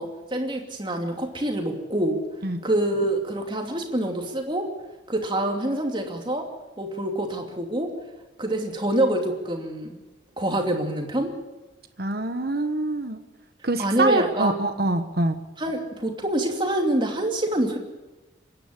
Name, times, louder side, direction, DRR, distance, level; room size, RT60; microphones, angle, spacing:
voice 1, 0.0-2.2 2.6-4.7 5.1-6.5 6.8-7.9 8.4-10.0 10.4-11.3 13.8-14.8 15.6-17.8, right 1 dB, 25° right, 3 dB, 2.7 m, -26 dB
voice 2, 12.0-13.2 13.6-15.4, right 2 dB, 55° right, 8 dB, 1.2 m, -25 dB
25.5 x 10.5 x 9.9 m, 1.1 s
head